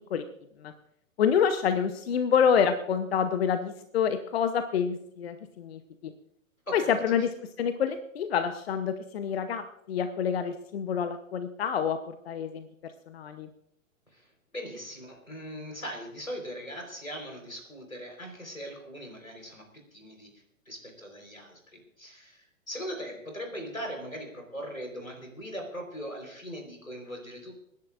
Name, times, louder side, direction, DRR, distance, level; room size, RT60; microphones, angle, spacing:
voice 1, 1.2-6.1 6.7-7.3 7.6-13.5, left 7 dB, 50° left, 10 dB, 0.9 m, -27 dB
voice 2, 6.7-7.1 14.1-20.3 20.7-27.5, equal, 90° left, 2 dB, 4.2 m, -40 dB
29.0 x 10.5 x 2.5 m, 0.75 s
figure-of-eight pair, 115°, 40 cm